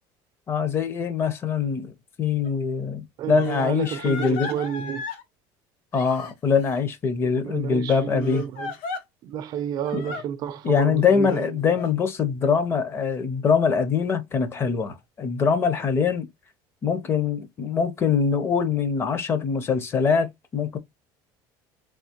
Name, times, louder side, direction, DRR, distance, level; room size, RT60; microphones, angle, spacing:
voice 1, 0.5-1.9 2.2-4.5 5.9-8.4 9.9-10.0 10.6-16.3 16.8-20.8, left 6 dB, 25° left, 0.5 m, -23 dB
Crying sobbing, 2.4-2.5 3.4-5.2 5.9-6.8 8.2-9.0 9.8-10.2 11.3-11.9, left 4 dB, 85° left, 1.1 m, -36 dB
voice 2, 3.2-5.1 7.2-8.7 9.2-11.4, right 9 dB, 40° right, 0.4 m, -30 dB
3.5 x 2.7 x 2.8 m
cardioid pair, 165°, 10 cm